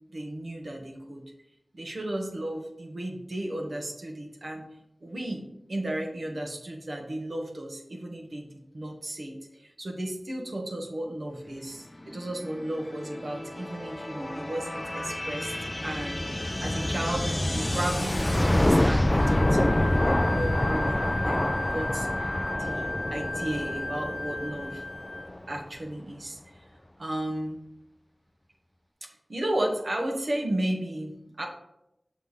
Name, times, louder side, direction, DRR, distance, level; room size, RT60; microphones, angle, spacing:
voice 1, 0.1-1.2 1.7-4.7 5.0-15.5 15.8-24.8 25.5-26.6 27.0-27.6 29.3-31.5, right 1 dB, 65° right, 1 dB, 1.1 m, -34 dB
sound 1, 12.1-25.6, left 1 dB, 25° left, 0.3 m, -27 dB
Wind instrument woodwind instrument, 19.1-25.3, left 2 dB, 70° left, 0.8 m, -35 dB
6.5 x 3.2 x 5.4 m, 0.86 s
wide cardioid pair, 50°, 0 cm